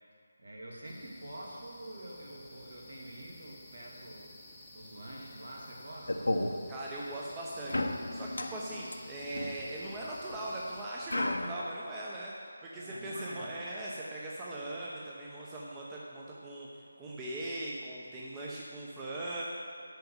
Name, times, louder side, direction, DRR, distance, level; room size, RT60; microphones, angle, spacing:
voice 1, 0.4-4.3 4.7-6.3 12.7-13.5, right 1 dB, 65° right, -2 dB, 2.3 m, -46 dB
sound 1, 0.8-10.9, left 1 dB, 5° left, 1.0 m, -53 dB
sound 2, 6.1-6.5 7.7-10.4 11.1-11.6, left 1 dB, 70° left, 0.8 m, -34 dB
voice 2, 6.7-19.4, right 1 dB, 15° right, -5 dB, 0.8 m, -40 dB
9.1 x 5.8 x 7.2 m, 2.5 s
figure-of-eight pair, 155°, 0 cm